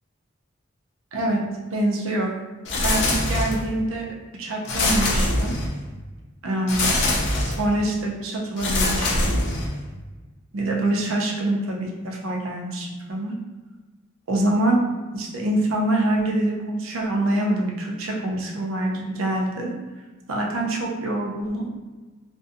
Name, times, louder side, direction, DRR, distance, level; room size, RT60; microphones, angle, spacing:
voice 1, 1.1-1.4 1.7-2.3 2.8-4.1 4.4-5.5 6.4-6.9 7.4-9.4 10.5-13.3 14.3-14.8 15.1-19.7 20.3-21.7, right 1 dB, 90° right, -1 dB, 0.5 m, -25 dB
sound 1, 2.6-3.8 4.6-5.9 6.7-7.7 8.6-9.9, left 1 dB, 55° left, 0.4 m, -23 dB
2.6 x 2.2 x 2.5 m, 1.3 s
head